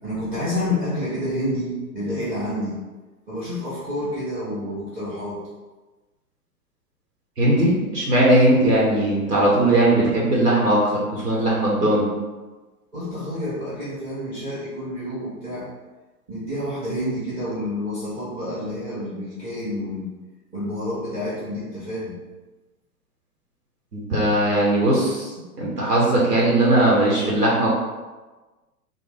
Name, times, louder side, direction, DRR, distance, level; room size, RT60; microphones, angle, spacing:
voice 1, 0.0-2.8 3.3-5.4 12.9-15.7 16.3-20.1 20.5-22.2, left 1 dB, 20° right, -11 dB, 1.2 m, -29 dB
voice 2, 7.4-12.1 23.9-25.3 25.6-27.7, right 1 dB, 80° right, -5 dB, 1.0 m, -19 dB
3.3 x 2.1 x 3.3 m, 1.2 s
figure-of-eight pair, 105°, 47 cm